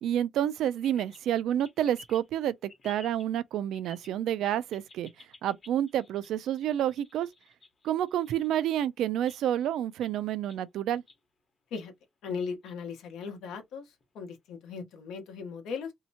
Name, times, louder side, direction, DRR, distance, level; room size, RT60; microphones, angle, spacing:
voice 1, 0.0-5.1 5.4-7.3 7.8-11.0, right 11 dB, 80° right, 0.3 m, -29 dB
sound 1, 0.8-1.2 1.6-2.4 2.7-3.3 3.7-4.2 4.4-8.6 9.2-9.7 10.0-10.1 10.5-11.2 11.7-11.8 12.5-12.7 14.0-14.1, left 3 dB, 45° left, 0.9 m, -54 dB
voice 2, 12.2-13.8 14.1-15.9, left 5 dB, 85° left, 0.9 m, -37 dB
2.7 x 2.1 x 2.7 m
cardioid pair, 90°, 0 cm